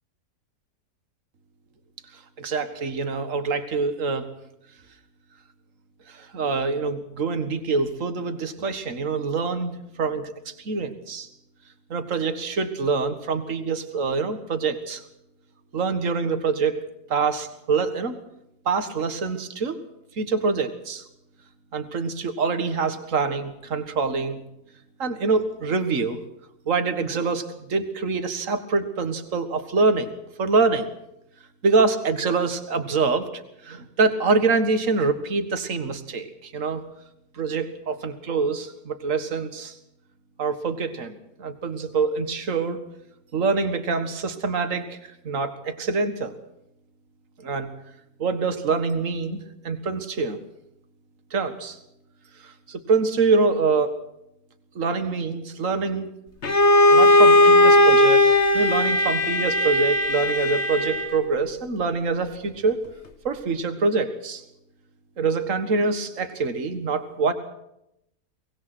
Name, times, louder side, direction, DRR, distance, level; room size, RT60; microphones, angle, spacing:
voice 1, 2.4-4.3 6.1-11.3 11.9-15.0 15.7-16.8 17.1-18.2 18.7-19.8 20.2-21.0 21.7-24.4 25.0-26.2 26.7-30.1 30.4-30.9 31.6-36.8 37.3-39.7 40.4-42.8 43.3-45.0 45.2-46.3 47.4-47.7 48.2-49.4 49.6-50.4 51.3-51.8 52.4-54.0 54.8-56.1 56.9-62.8 63.2-64.4 65.2-67.3, right 4 dB, 55° right, 9 dB, 2.1 m, -25 dB
Bowed string instrument, 56.4-61.2, left 1 dB, 45° left, 2.0 m, -17 dB
24.0 x 19.5 x 6.2 m, 0.82 s
omnidirectional pair, 1.6 m